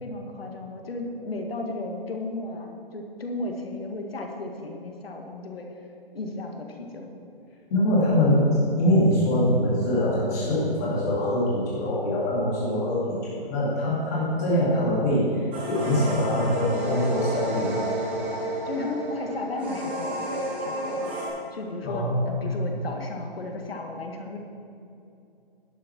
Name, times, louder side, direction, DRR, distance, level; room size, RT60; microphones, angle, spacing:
voice 1, 0.0-5.7 6.1-7.1 14.4-14.8 18.6-20.3 20.6-21.1 21.5-24.4, left 2 dB, 80° left, 3 dB, 1.8 m, -34 dB
voice 2, 7.7-17.9 21.8-22.6, left 1 dB, 15° left, -8 dB, 2.3 m, -23 dB
sound 1, 15.5-21.3, right 1 dB, 10° right, 0.8 m, -31 dB
11.0 x 6.9 x 6.0 m, 2.7 s
hypercardioid pair, 180°, 29 cm